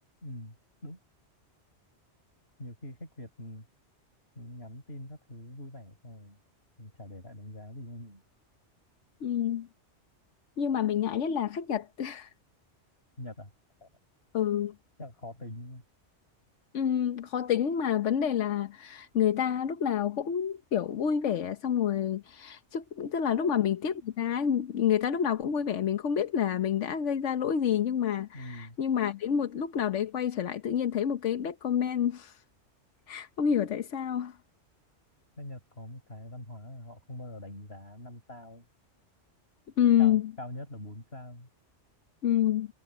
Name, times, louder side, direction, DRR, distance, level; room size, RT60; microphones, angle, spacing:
voice 1, 0.2-0.6 0.8-1.0 2.6-3.7 4.4-6.4 6.8-8.2 13.2-13.5 13.8-13.9 15.0-15.8 23.4-23.5 28.3-28.8 35.4-38.7 40.0-41.5, left 1 dB, 60° left, 6.0 m, -44 dB
voice 2, 9.2-9.7 10.6-12.3 14.3-14.7 16.7-32.4 33.1-34.4 39.8-40.3 42.2-42.7, left 9 dB, 90° left, 1.3 m, -28 dB
omnidirectional pair, 1.2 m